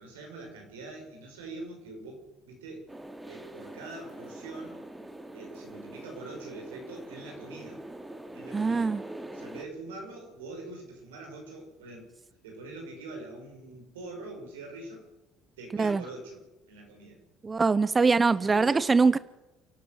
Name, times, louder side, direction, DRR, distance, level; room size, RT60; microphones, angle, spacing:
voice 1, 0.0-2.2 2.4-2.9 3.2-4.8 5.3-7.8 8.3-9.0 9.3-12.1 12.4-15.0 15.6-16.4 16.7-17.2 18.0-18.9, right 2 dB, 90° right, 1 dB, 6.1 m, -43 dB
sound 1, 2.9-9.6, right 1 dB, 10° right, 2.6 m, -44 dB
voice 2, 8.5-9.0 15.8-16.0 17.4-19.2, right 4 dB, 25° right, 16 dB, 0.6 m, -23 dB
29.5 x 12.0 x 7.7 m, 1.0 s
hypercardioid pair, 65°, 0 cm